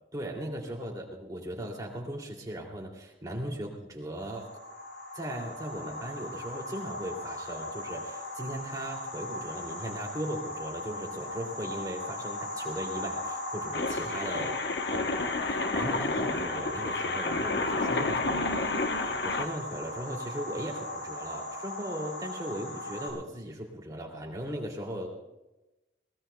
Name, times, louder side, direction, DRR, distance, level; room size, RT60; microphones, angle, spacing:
voice 1, 0.1-4.5 5.1-14.5 14.9-25.2, right 1 dB, 20° right, -1 dB, 2.7 m, -38 dB
sound 1, 4.2-23.1, left 1 dB, 85° left, 6.6 m, -38 dB
sound 2, 13.7-19.5, left 3 dB, 70° left, 1.0 m, -30 dB
21.5 x 20.0 x 2.3 m, 1.0 s
head